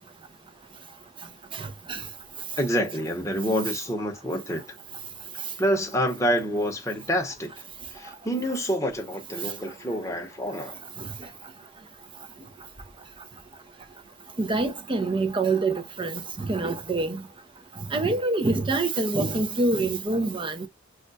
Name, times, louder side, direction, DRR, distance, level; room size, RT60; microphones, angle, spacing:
voice 1, 1.5-2.0 11.0-11.1 14.4-17.2 17.9-20.7, right 3 dB, 25° right, 0.4 m, -26 dB
voice 2, 2.6-4.7 5.6-7.5 7.9-10.8, equal, 15° left, 0.8 m, -27 dB
2.4 x 2.1 x 3.8 m
head